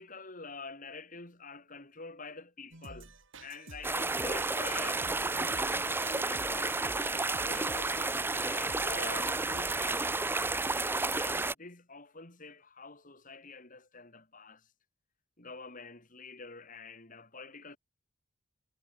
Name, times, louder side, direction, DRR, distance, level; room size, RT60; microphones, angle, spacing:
voice 1, 0.0-3.1 3.4-6.8 7.4-10.6 11.1-14.7 15.4-17.8, left 4 dB, 40° left, 3.1 m, -47 dB
sound 1, 2.7-10.0, right 2 dB, 60° right, 4.5 m, -50 dB
sound 2, 3.8-11.5, right 3 dB, 10° right, 0.6 m, -31 dB
head